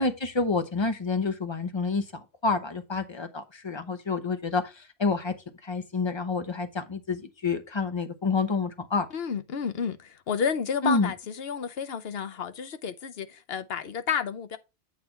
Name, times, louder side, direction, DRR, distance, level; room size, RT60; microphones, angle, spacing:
voice 1, 0.0-5.3 5.6-9.1 10.8-11.1, left 3 dB, 25° left, 0.8 m, -28 dB
voice 2, 9.1-14.6, left 7 dB, 60° left, 1.0 m, -31 dB
8.6 x 3.3 x 5.7 m
omnidirectional pair, 1.2 m